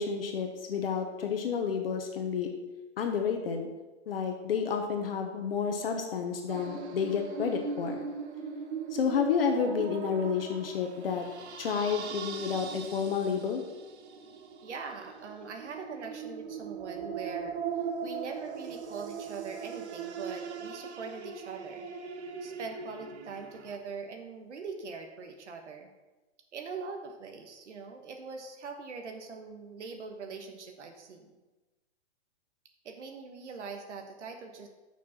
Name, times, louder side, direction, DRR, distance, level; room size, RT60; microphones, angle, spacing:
voice 1, 0.0-2.5 3.0-3.7 4.1-8.0 8.9-11.3 11.6-13.6, left 6 dB, 55° left, 4 dB, 1.1 m, -30 dB
sound 1, 6.5-23.8, right 6 dB, 70° right, 1.0 m, -40 dB
voice 2, 14.6-17.5 18.0-21.9 22.4-25.9 26.5-31.4 32.8-34.7, right 4 dB, 90° right, 4 dB, 1.3 m, -42 dB
7.1 x 5.9 x 5.7 m, 1.2 s
hypercardioid pair, 175°, 34 cm